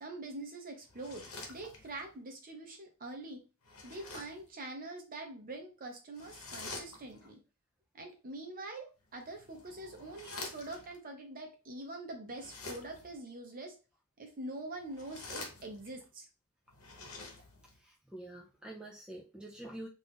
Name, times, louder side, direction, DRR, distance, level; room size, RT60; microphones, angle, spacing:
voice 1, 0.0-3.4 3.8-7.4 7.9-13.8 14.2-16.3, right 2 dB, 40° right, 3 dB, 0.8 m, -44 dB
sound 1, 0.9-2.1 3.6-4.5 6.1-7.3 9.1-11.0 12.3-13.2 14.8-16.0 16.7-17.8, left 3 dB, 65° left, 1.0 m, -47 dB
voice 2, 17.8-19.9, right 1 dB, 5° right, -2 dB, 0.4 m, -47 dB
2.6 x 2.5 x 3.6 m, 0.31 s
head